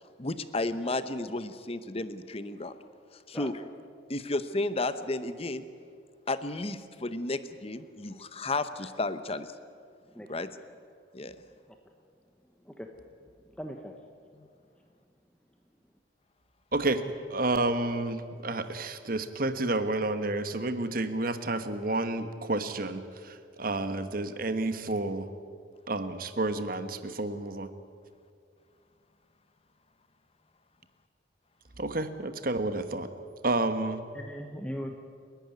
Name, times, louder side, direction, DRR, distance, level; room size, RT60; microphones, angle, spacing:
voice 1, 0.2-2.7 3.3-3.5 4.1-5.6 6.3-9.5 10.3-10.5 11.1-11.3 14.4-14.5, left 2 dB, 30° left, 12 dB, 1.0 m, -33 dB
voice 2, 10.1-10.5 12.6-13.1 13.6-14.0 34.1-35.0, equal, 5° left, 3 dB, 1.1 m, -39 dB
voice 3, 16.7-17.0 17.3-25.3 25.9-27.7 31.8-33.1 33.4-34.0, right 2 dB, 50° right, 10 dB, 1.3 m, -30 dB
30.0 x 12.0 x 9.6 m, 2.3 s
head